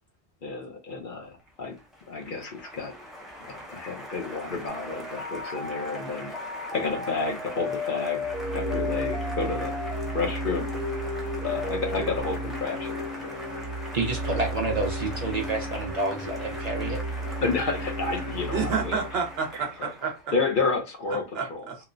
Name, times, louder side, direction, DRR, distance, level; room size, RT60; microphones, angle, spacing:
voice 1, 0.4-1.8 2.1-2.9 3.4-6.3 6.7-9.8 10.1-10.7 11.4-13.4 17.4-19.0 20.3-21.6, left 4 dB, 55° left, 0.8 m, -30 dB
Applause, 1.4-20.3, equal, ahead, 0.5 m, -42 dB
sound 1, 4.7-10.3 10.7-12.2, left 3 dB, 35° left, 1.0 m, -35 dB
sound 2, 8.2-19.5, right 1 dB, 85° left, 1.0 m, -34 dB
voice 2, 13.9-17.0, right 3 dB, 45° right, 0.6 m, -29 dB
voice 3, 18.5-20.1 21.3-21.8, right 5 dB, 65° right, 0.9 m, -29 dB
3.0 x 2.1 x 2.4 m
omnidirectional pair, 1.1 m